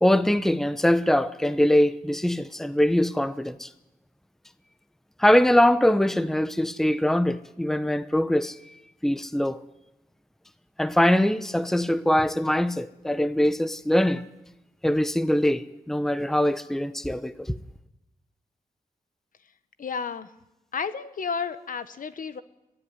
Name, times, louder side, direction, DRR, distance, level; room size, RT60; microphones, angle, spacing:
voice 1, 0.0-3.7 5.2-8.5 9.0-9.6 10.8-14.2 14.8-17.6, left 1 dB, ahead, 0.8 m, -22 dB
voice 2, 19.8-20.3 20.7-22.4, left 6 dB, 65° left, 1.1 m, -32 dB
22.5 x 14.0 x 9.7 m
wide cardioid pair, 95°, 15 cm